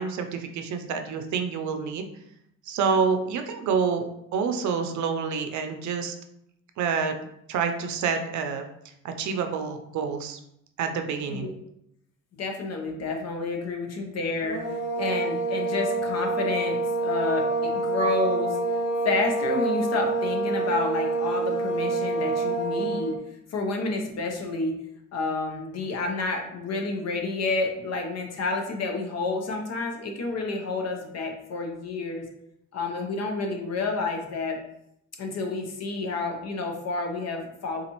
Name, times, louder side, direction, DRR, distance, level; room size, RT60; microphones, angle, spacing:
voice 1, 0.0-2.0 2.7-4.1 4.3-6.1 6.8-7.1 7.5-8.6 9.0-10.4 10.8-11.5, right 5 dB, 70° right, 6 dB, 0.5 m, -27 dB
voice 2, 12.4-14.6 14.9-18.6 19.0-23.2 23.5-24.7 25.1-32.3 32.7-34.6 35.2-37.8, left 3 dB, 55° left, 3 dB, 0.8 m, -29 dB
sound 1, 14.4-23.2, right 2 dB, 5° right, 1.4 m, -27 dB
3.9 x 2.4 x 2.9 m, 0.77 s
cardioid pair, 90°, 30 cm